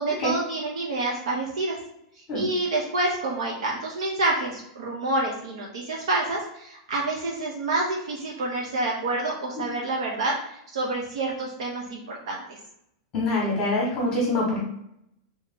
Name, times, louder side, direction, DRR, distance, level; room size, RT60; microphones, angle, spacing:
voice 1, 0.0-1.8 2.1-12.6, right 2 dB, 80° right, -3 dB, 1.0 m, -28 dB
voice 2, 13.1-14.6, left 2 dB, 25° left, -2 dB, 1.0 m, -25 dB
3.1 x 3.0 x 3.7 m, 0.77 s
supercardioid pair, 165°, 3 cm